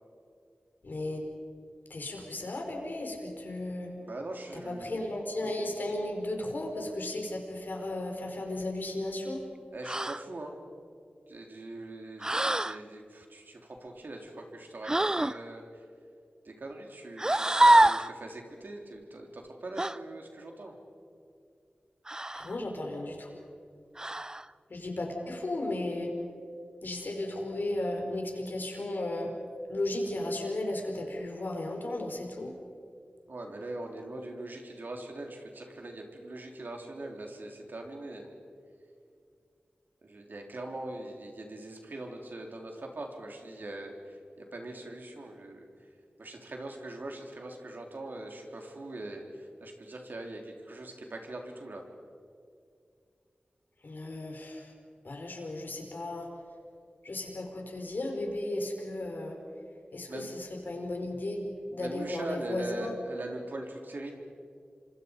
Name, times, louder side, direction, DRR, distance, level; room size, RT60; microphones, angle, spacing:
voice 1, 0.8-1.2 1.9-3.9 4.6-9.4 22.3-23.3 24.7-26.1 26.8-29.3 29.7-32.5 53.8-54.7 55.0-56.3 57.0-59.4 59.9-61.4 61.7-62.9, left 1 dB, 70° left, 2 dB, 4.9 m, -35 dB
voice 2, 4.0-5.0 9.7-10.6 11.3-15.8 16.4-20.7 33.3-38.3 40.0-45.7 46.2-51.8 60.1-60.3 61.8-64.1, right 2 dB, 70° right, 2 dB, 3.8 m, -41 dB
sound 1, 9.8-10.2 12.2-12.8 14.8-15.4 17.2-18.1 19.8-20.0 22.1-22.6 24.0-24.5, right 1 dB, 20° right, 0.6 m, -25 dB
27.5 x 25.5 x 5.4 m, 2.3 s
wide cardioid pair, 50°, 3 cm